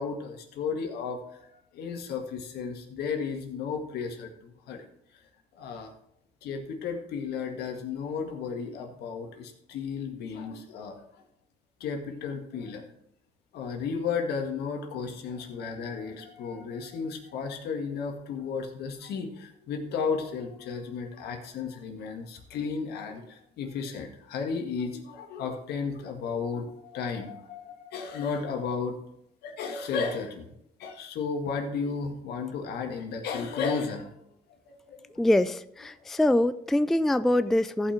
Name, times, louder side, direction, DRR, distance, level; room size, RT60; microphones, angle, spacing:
voice 1, 0.0-1.5 1.7-4.9 5.6-5.9 6.4-11.0 11.8-12.9 13.5-29.0 29.4-30.5 30.8-34.1 34.7-35.0, left 5 dB, 75° left, 4 dB, 1.8 m, -33 dB
voice 2, 35.1-37.9, left 1 dB, ahead, 13 dB, 0.3 m, -24 dB
15.0 x 5.6 x 4.4 m, 0.78 s
cardioid pair, 110°, 17 cm